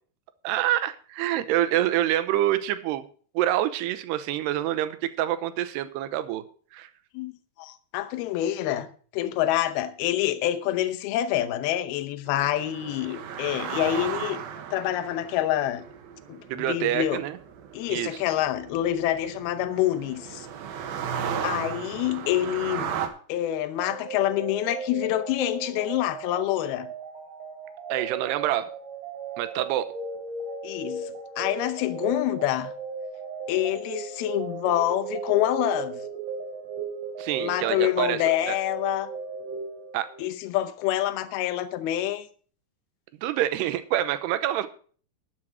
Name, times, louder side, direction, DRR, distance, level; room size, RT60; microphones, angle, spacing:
voice 1, 0.4-3.1 3.3-6.4 6.7-6.9 16.5-17.4 17.9-18.1 27.9-28.7 29.4-29.9 37.2-38.6 39.9-40.1 43.2-44.7, right 13 dB, 85° right, 2.9 m, -26 dB
voice 2, 7.6-8.9 9.1-14.4 14.7-15.8 16.3-17.2 17.7-20.5 21.1-23.0 23.3-26.9 30.6-32.7 33.5-36.0 37.4-39.1 40.2-42.3, left 13 dB, 75° left, 2.7 m, -27 dB
sound 1, 12.3-23.1, right 8 dB, 70° right, 2.9 m, -36 dB
sound 2, 23.8-40.4, right 4 dB, 55° right, 3.8 m, -36 dB
12.0 x 7.5 x 6.2 m
omnidirectional pair, 4.7 m